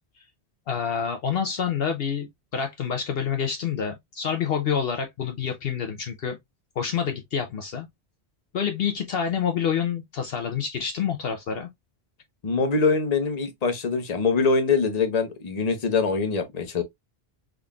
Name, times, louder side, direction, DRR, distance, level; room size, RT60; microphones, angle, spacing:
voice 1, 0.7-6.4 6.8-7.9 8.5-11.7, left 7 dB, 65° left, 0.8 m, -27 dB
voice 2, 12.4-16.8, left 4 dB, 40° left, 0.9 m, -23 dB
3.7 x 3.4 x 2.3 m
omnidirectional pair, 1.1 m